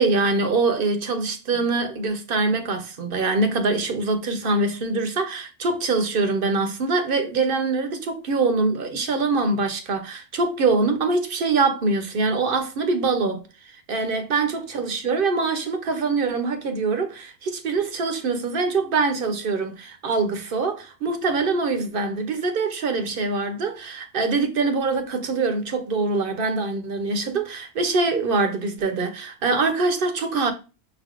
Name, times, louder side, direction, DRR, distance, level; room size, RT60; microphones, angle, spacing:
voice 1, 0.0-30.5, right 3 dB, 60° right, 0.8 m, -24 dB
6.0 x 3.4 x 2.4 m
omnidirectional pair, 1.1 m